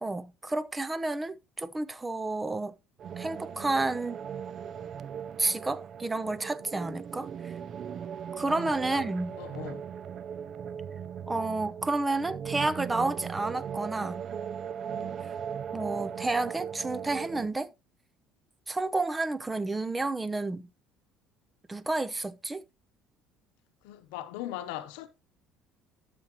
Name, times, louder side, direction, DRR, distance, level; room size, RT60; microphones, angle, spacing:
voice 1, 0.0-2.7 3.2-4.2 5.4-7.5 8.4-9.4 11.3-14.2 15.7-17.7 18.7-20.7 21.7-22.6, right 2 dB, 15° right, 0.8 m, -30 dB
Granular Ambience Testing Sample, 3.0-17.5, right 8 dB, 45° right, 0.5 m, -38 dB
voice 2, 9.4-9.8 14.9-15.1 23.8-25.1, left 13 dB, 90° left, 0.8 m, -40 dB
12.5 x 6.8 x 3.0 m
cardioid pair, 110°, 0 cm